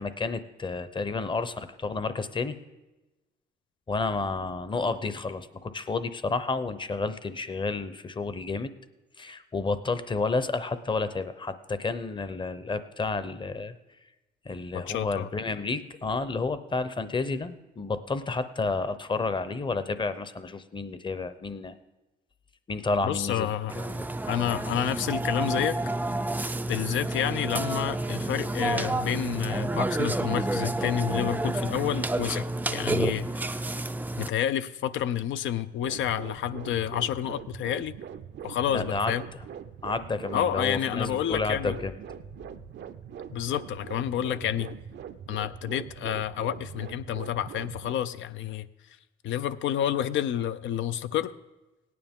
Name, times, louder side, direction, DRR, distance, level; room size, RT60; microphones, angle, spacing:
voice 1, 0.0-2.6 3.9-8.7 9.2-13.7 14.5-21.7 22.7-24.0 38.7-39.1 39.8-41.9, left 3 dB, 25° left, 12 dB, 0.7 m, -31 dB
voice 2, 14.7-15.3 23.0-23.7 24.3-25.8 26.7-33.6 34.2-37.9 38.4-39.2 40.3-41.8 43.3-44.7 45.3-48.7 49.2-51.3, left 11 dB, 75° left, 14 dB, 0.5 m, -29 dB
Burping eructation, 23.7-34.3, right 2 dB, 10° right, 0.4 m, -29 dB
sound 1, 35.8-47.9, right 8 dB, 60° right, 0.6 m, -42 dB
17.5 x 9.5 x 3.6 m, 1.1 s
cardioid pair, 90°, 20 cm